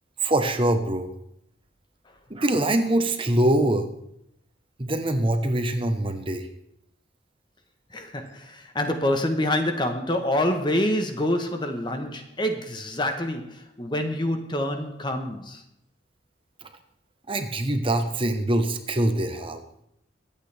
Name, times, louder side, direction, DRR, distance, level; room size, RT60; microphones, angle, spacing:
voice 1, 0.2-1.1 2.3-3.9 4.8-6.5 16.6-16.7 17.3-19.6, right 1 dB, 30° right, 1.1 m, -24 dB
voice 2, 7.9-15.6, left 1 dB, 25° left, 1.1 m, -26 dB
24.5 x 8.6 x 3.4 m
head